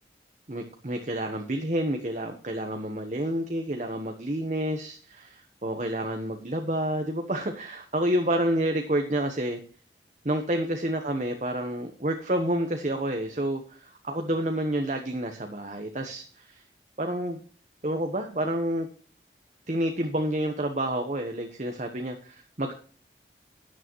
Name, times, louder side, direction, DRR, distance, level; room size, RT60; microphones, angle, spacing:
voice 1, 0.5-9.6 10.2-16.6 17.0-17.4 17.8-18.9 19.7-22.7, right 1 dB, 40° right, 5 dB, 1.1 m, -29 dB
12.5 x 9.8 x 3.1 m, 0.41 s
head